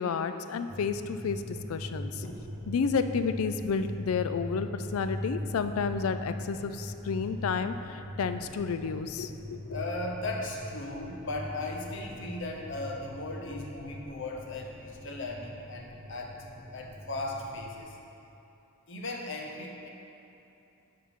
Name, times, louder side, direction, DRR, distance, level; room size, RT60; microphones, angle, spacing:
voice 1, 0.0-2.2 2.7-9.8, left 5 dB, 85° left, 10 dB, 0.4 m, -31 dB
sound 1, 0.7-17.8, equal, 30° right, 1.3 m, -41 dB
voice 2, 9.7-16.4 16.7-18.0 18.9-19.9, left 2 dB, 60° left, 1 dB, 0.9 m, -37 dB
9.4 x 5.8 x 3.7 m, 2.8 s
head